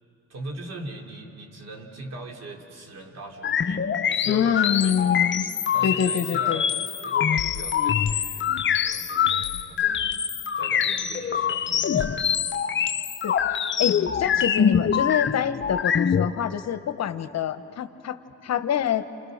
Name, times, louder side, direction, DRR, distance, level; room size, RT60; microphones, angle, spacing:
voice 1, 0.3-5.1 5.7-8.5 8.8-10.2 10.5-12.3 14.2-14.4, right 2 dB, 60° right, 2 dB, 3.4 m, -41 dB
sound 1, 3.4-16.3, left 8 dB, 40° left, 0.7 m, -24 dB
voice 2, 4.3-5.5 5.8-6.6 13.2-19.1, left 8 dB, 60° left, 11 dB, 1.1 m, -26 dB
29.0 x 28.5 x 6.5 m, 2.8 s
cardioid pair, 90°, 30 cm